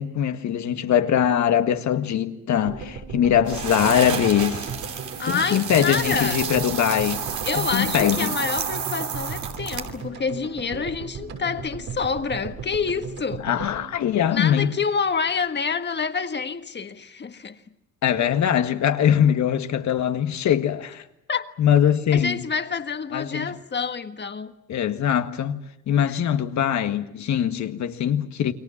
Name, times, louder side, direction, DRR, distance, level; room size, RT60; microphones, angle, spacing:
voice 1, 0.0-4.7 5.2-7.3 7.6-8.4 13.4-14.7 18.0-21.0 21.6-22.4 23.1-23.5 24.7-28.5, left 9 dB, 70° left, 1.8 m, -22 dB
sound 1, 2.7-14.9 15.1-15.2 15.4-15.5, right 5 dB, 90° right, 7.0 m, -37 dB
sound 2, 3.5-10.0, right 7 dB, 70° right, 2.9 m, -30 dB
voice 2, 5.2-6.4 7.4-13.5 14.3-17.6 21.3-21.5 22.1-24.5 26.0-26.2, left 5 dB, 35° left, 1.6 m, -27 dB
29.0 x 23.0 x 7.3 m
cardioid pair, 90°, 30 cm